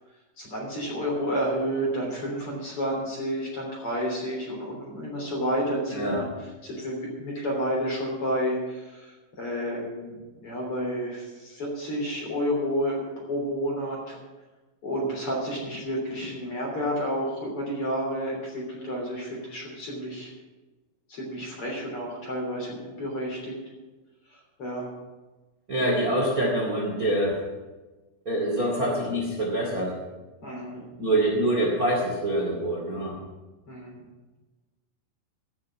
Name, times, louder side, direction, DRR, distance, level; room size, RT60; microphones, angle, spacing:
voice 1, 0.4-6.2 6.6-13.0 13.3-14.2 14.8-20.3 21.1-23.5 24.3-24.9 28.7-28.8 30.4-30.8 33.7-34.0, equal, 30° left, -2 dB, 3.4 m, -30 dB
voice 2, 25.7-27.4 28.2-30.0 31.0-33.2, right 1 dB, 35° right, -3 dB, 1.3 m, -25 dB
15.5 x 6.5 x 8.4 m, 1.2 s
omnidirectional pair, 5.8 m